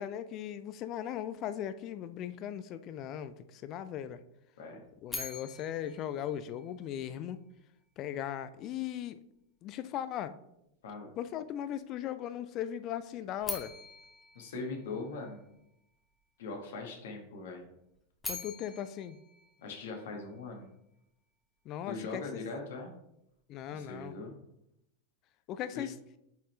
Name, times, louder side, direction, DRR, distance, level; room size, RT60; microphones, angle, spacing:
voice 1, 0.0-4.2 5.0-7.4 8.0-9.2 9.6-10.3 11.2-13.7 18.3-19.2 21.7-22.4 23.5-24.1 25.5-26.0, left 10 dB, 35° left, 13 dB, 0.4 m, -38 dB
sound 1, 5.1-7.2 13.4-15.6 17.9-20.4, left 2 dB, 10° left, 1.1 m, -44 dB
voice 2, 14.3-15.5 16.4-17.6 19.6-20.7 21.9-22.9 23.7-24.3 25.7-25.9, left 3 dB, 55° left, 2 dB, 1.4 m, -41 dB
8.3 x 4.3 x 3.1 m, 0.80 s
figure-of-eight pair, 90°, 0 cm